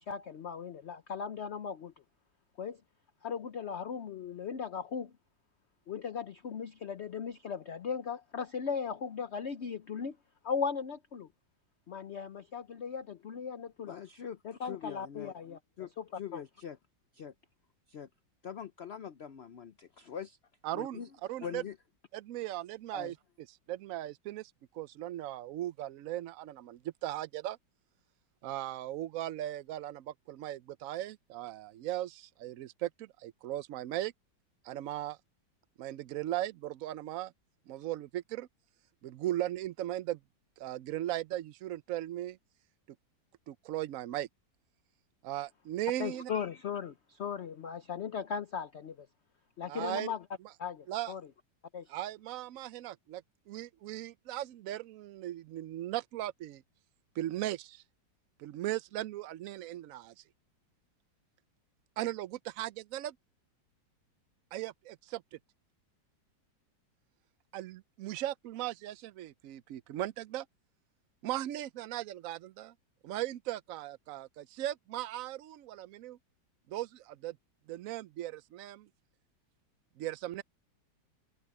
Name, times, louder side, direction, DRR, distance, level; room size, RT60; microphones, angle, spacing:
voice 1, 0.0-1.9 2.6-2.8 3.2-5.1 5.9-10.2 10.4-11.3 11.9-14.0 14.4-15.6 16.0-16.1 16.3-16.4 46.0-49.1 49.6-50.2 50.6-51.2 51.7-51.9, left 6 dB, 55° left, 0.8 m, -37 dB
voice 2, 13.8-15.3 15.8-16.8 17.1-17.3 17.9-18.1 18.4-20.4 20.7-21.1 21.4-21.8 22.9-23.1, left 8 dB, 85° left, 0.5 m, -43 dB
voice 3, 20.6-21.0 21.3-21.6 22.1-23.1 23.7-27.6 28.4-34.1 34.6-35.2 35.8-37.3 37.7-38.5 39.0-40.2 40.6-42.4 43.5-44.3 45.2-46.3 49.7-50.1 50.9-51.1 51.9-56.6 57.2-57.8 58.4-60.1 62.0-63.2 64.5-65.4 67.5-70.5 71.2-72.7 73.0-76.2 76.7-77.4 77.7-78.9 80.0-80.4, right 14 dB, 80° right, 0.7 m, -38 dB
omnidirectional pair, 2.0 m